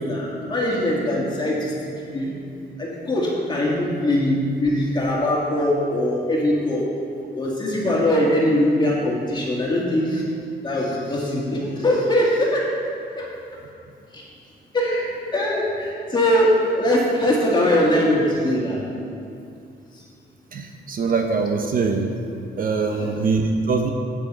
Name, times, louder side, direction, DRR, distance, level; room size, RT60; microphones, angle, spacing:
voice 1, 0.0-2.4 2.8-6.9 7.3-10.2 10.6-12.7 13.2-13.3 14.1-14.2 14.7-18.8 22.8-23.1, left 1 dB, 25° left, -4 dB, 2.2 m, -21 dB
voice 2, 20.5-22.2 22.6-23.9, right 4 dB, 50° right, 4 dB, 0.7 m, -23 dB
9.1 x 7.0 x 5.6 m, 2.5 s
cardioid pair, 130°, 18 cm